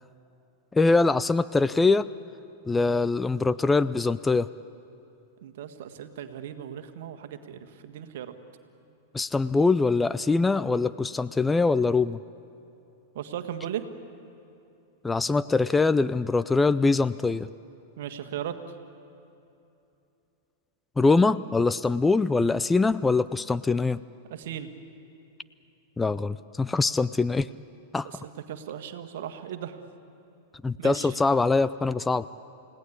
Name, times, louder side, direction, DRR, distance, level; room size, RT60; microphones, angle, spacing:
voice 1, 0.7-2.1 2.7-4.5 9.1-12.2 15.0-17.5 21.0-24.0 26.0-27.5 27.9-28.1 30.6-32.3, left 3 dB, 10° left, 15 dB, 0.4 m, -23 dB
voice 2, 5.4-8.3 13.1-13.9 18.0-18.5 24.3-24.7 28.0-29.8 30.8-31.1, right 10 dB, 60° right, 8 dB, 1.7 m, -37 dB
29.5 x 17.5 x 8.4 m, 2.8 s
hypercardioid pair, 100°, 0 cm